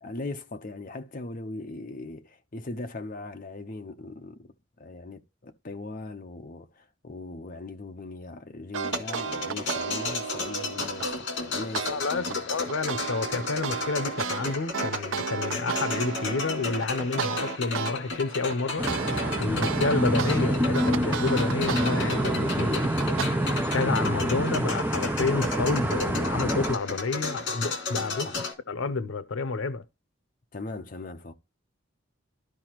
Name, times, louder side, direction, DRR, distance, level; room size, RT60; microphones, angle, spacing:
voice 1, 0.0-4.5 4.8-11.9 12.1-12.5 28.2-28.4 30.5-31.3, left 2 dB, 45° left, 0.7 m, -39 dB
sound 1, 8.7-11.1 11.7-11.9 12.3-17.9 18.3-23.2, right 6 dB, 80° right, 0.5 m, -33 dB
sound 2, 8.8-28.5, left 3 dB, 65° left, 2.2 m, -34 dB
voice 2, 11.9-18.9 19.4-22.8 23.5-28.3 28.7-29.8, left 4 dB, 80° left, 0.7 m, -29 dB
sound 3, 18.8-26.7, right 1 dB, 10° right, 0.5 m, -27 dB
13.0 x 4.8 x 2.9 m
head